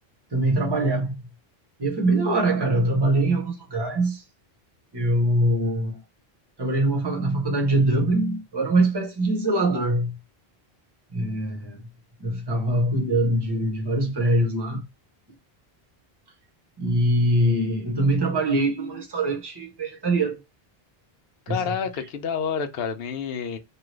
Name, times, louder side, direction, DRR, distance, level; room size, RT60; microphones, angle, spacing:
voice 1, 0.3-1.2 1.8-4.2 4.9-6.0 6.6-10.2 11.1-11.9 12.2-14.9 16.8-20.4 21.5-21.6, right 1 dB, 25° right, 0.9 m, -23 dB
voice 2, 21.5-23.6, left 6 dB, 75° left, 0.8 m, -28 dB
2.9 x 2.4 x 3.1 m
omnidirectional pair, 1.0 m